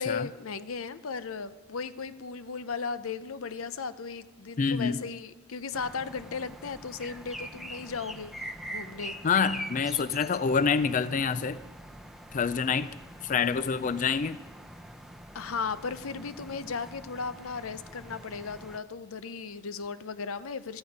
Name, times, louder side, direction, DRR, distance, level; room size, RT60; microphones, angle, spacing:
voice 1, 0.0-8.3 8.7-9.1 15.3-20.8, left 5 dB, 85° left, 13 dB, 0.7 m, -36 dB
voice 2, 4.6-5.1 9.2-11.6 12.3-12.9 13.2-14.4, left 5 dB, 40° left, 14 dB, 0.4 m, -27 dB
sound 1, 5.7-18.8, equal, ahead, 0.7 m, -44 dB
16.0 x 13.5 x 5.3 m, 1.1 s
head